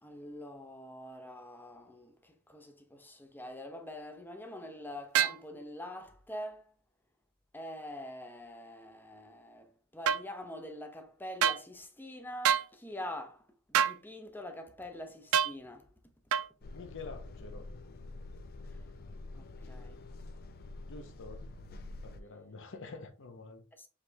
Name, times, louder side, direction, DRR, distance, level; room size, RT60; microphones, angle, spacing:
voice 1, 0.0-6.6 7.5-15.9 18.7-18.8 19.3-20.0 23.8-23.9, left 1 dB, 10° left, 0.7 m, -45 dB
sound 1, 5.1-5.4 10.1-10.2 11.4-11.6 12.4-12.7 13.7-14.0 15.3-15.5 16.3-16.5, right 8 dB, 75° right, 0.4 m, -26 dB
sound 2, 16.6-22.2, left 2 dB, 45° left, 0.4 m, -46 dB
voice 2, 16.7-17.7 20.9-21.5 22.0-23.6, left 3 dB, 60° left, 0.8 m, -47 dB
5.0 x 3.3 x 2.8 m
head